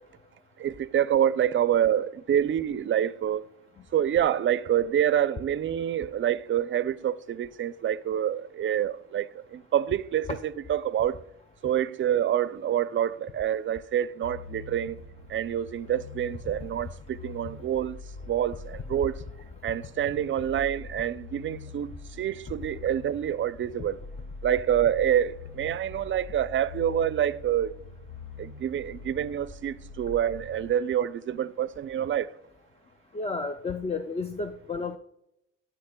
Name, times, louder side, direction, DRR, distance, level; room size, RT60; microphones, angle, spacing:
voice 1, 0.6-3.4 3.9-11.2 11.6-15.0 15.3-18.0 18.3-19.2 19.6-21.9 22.2-24.0 24.4-27.7 28.4-32.3, right 10 dB, 40° right, 0.4 m, -27 dB
sound 1, 14.2-30.7, left 4 dB, 80° left, 0.7 m, -44 dB
voice 2, 33.1-35.0, left 4 dB, 20° left, 0.4 m, -32 dB
12.5 x 4.8 x 2.2 m
cardioid pair, 90°, 30 cm